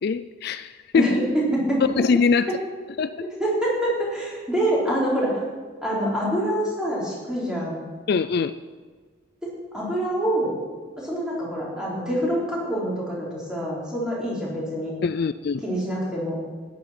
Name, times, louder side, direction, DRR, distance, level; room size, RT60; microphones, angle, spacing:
voice 1, 0.0-1.1 1.8-2.5 3.0-3.2 8.1-8.5 15.0-15.6, left 5 dB, 50° left, 13 dB, 0.3 m, -22 dB
voice 2, 3.4-5.3 5.8-7.8 9.4-10.5 11.0-14.9 15.6-16.4, right 1 dB, 5° right, -6 dB, 4.3 m, -26 dB
13.5 x 10.5 x 5.9 m, 1.5 s
head